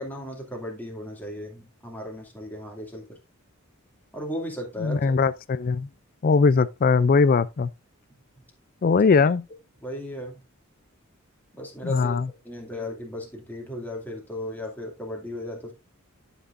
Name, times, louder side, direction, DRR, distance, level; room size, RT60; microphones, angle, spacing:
voice 1, 0.0-3.2 4.1-5.1 9.8-10.4 11.5-12.2 12.4-15.7, left 1 dB, 10° left, 2.4 m, -35 dB
voice 2, 4.8-5.9 6.2-7.7 8.8-9.4 11.9-12.3, left 4 dB, 40° left, 0.4 m, -20 dB
11.5 x 6.0 x 2.6 m
head